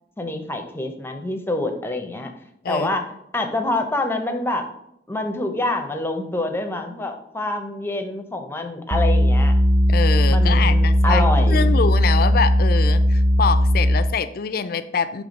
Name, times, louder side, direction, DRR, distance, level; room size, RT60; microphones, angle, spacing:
voice 1, 0.2-2.3 2.7-3.0 3.3-4.6 5.1-9.5 10.3-11.7, left 2 dB, 15° left, 5 dB, 0.6 m, -26 dB
sound 1, 8.9-14.2, equal, 25° right, 0.5 m, -17 dB
voice 2, 9.9-15.2, left 6 dB, 55° left, 12 dB, 0.4 m, -25 dB
6.8 x 3.2 x 5.2 m, 0.76 s
head